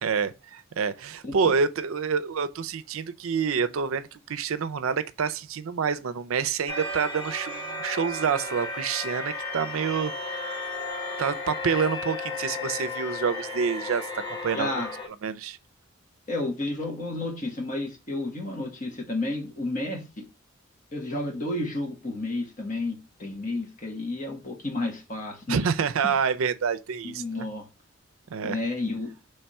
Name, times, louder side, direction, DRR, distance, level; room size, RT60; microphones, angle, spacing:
voice 1, 0.0-10.1 11.2-14.8 15.2-15.6 25.5-27.5 28.3-28.6, right 6 dB, 75° right, 0.5 m, -27 dB
sound 1, 6.7-15.1, left 2 dB, 20° left, 1.0 m, -34 dB
voice 2, 14.5-14.9 16.3-20.2 20.9-25.6 26.0-26.1 27.0-27.7 28.4-29.1, left 2 dB, 35° left, 1.3 m, -31 dB
3.5 x 3.3 x 4.2 m
head